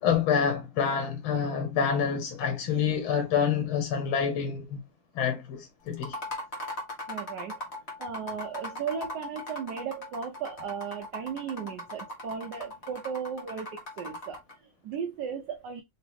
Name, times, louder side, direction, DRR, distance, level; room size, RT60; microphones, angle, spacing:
voice 1, 0.0-4.8 5.1-6.2, left 7 dB, 90° left, 1.6 m, -27 dB
sound 1, 5.9-14.5, left 1 dB, 35° left, 1.4 m, -39 dB
voice 2, 7.1-7.6 8.0-13.7 14.0-15.8, right 7 dB, 70° right, 1.1 m, -36 dB
3.6 x 2.9 x 3.2 m
omnidirectional pair, 2.2 m